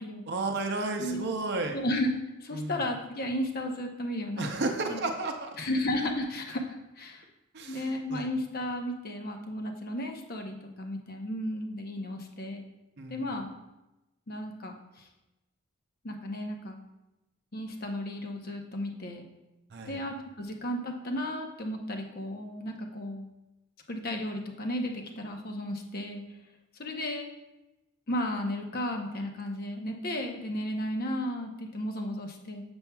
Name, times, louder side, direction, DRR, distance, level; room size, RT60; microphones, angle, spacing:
voice 1, 0.3-1.8 2.5-2.8 4.4-5.6 7.5-8.3 13.0-13.2 19.7-20.0, right 2 dB, 50° right, 4 dB, 0.6 m, -32 dB
voice 2, 1.7-2.1 2.4-4.5 4.9-5.0 5.6-7.2 7.7-12.7 13.1-13.6 14.3-15.1 16.0-16.8 17.5-19.3 19.9-23.3 23.9-26.2 26.8-27.3 28.1-32.6, left 1 dB, 45° left, 3 dB, 0.8 m, -34 dB
7.0 x 6.9 x 2.3 m, 0.97 s
head